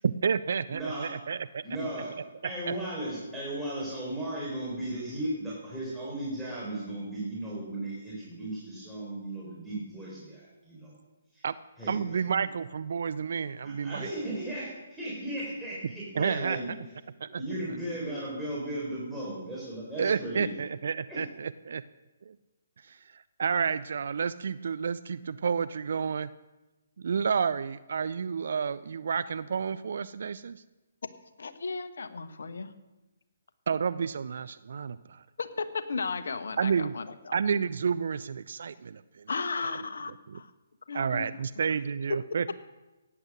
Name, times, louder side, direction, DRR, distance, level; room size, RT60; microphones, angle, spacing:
voice 1, 0.0-1.6 2.7-2.8 11.4-11.6 11.9-14.1 16.2-16.6 17.2-17.4 20.0-21.8 22.3-22.4 22.8-26.3 27.0-30.6 33.7-35.2 36.6-36.9 37.3-39.3 40.3-40.4 40.9-42.5, right 6 dB, 60° right, 16 dB, 0.4 m, -30 dB
voice 2, 0.7-1.1 1.6-2.1 2.4-10.9 11.3-11.5 11.8-12.5 13.6-16.7 17.4-20.5 21.1-21.2, right 1 dB, ahead, -9 dB, 4.5 m, -36 dB
voice 3, 31.4-32.7 35.4-37.3 39.3-40.5 40.9-41.4, left 4 dB, 65° left, 11 dB, 1.2 m, -35 dB
17.0 x 9.7 x 6.4 m, 1.1 s
figure-of-eight pair, 135°, 0 cm